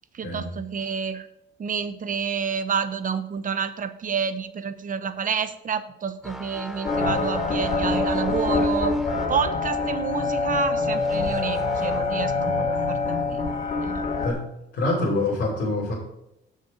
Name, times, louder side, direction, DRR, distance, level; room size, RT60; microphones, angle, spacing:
voice 1, 0.1-1.3 1.6-9.0 9.3-13.4 13.8-14.1, right 6 dB, 45° right, 11 dB, 0.8 m, -29 dB
sound 1, 6.2-12.2 12.6-12.9, equal, ahead, 1.2 m, -38 dB
sound 2, 6.8-14.3, left 3 dB, 45° left, 1.6 m, -25 dB
voice 2, 14.7-15.9, left 2 dB, 70° left, -5 dB, 2.6 m, -25 dB
6.8 x 6.5 x 5.1 m, 0.85 s
cardioid pair, 90°, 20 cm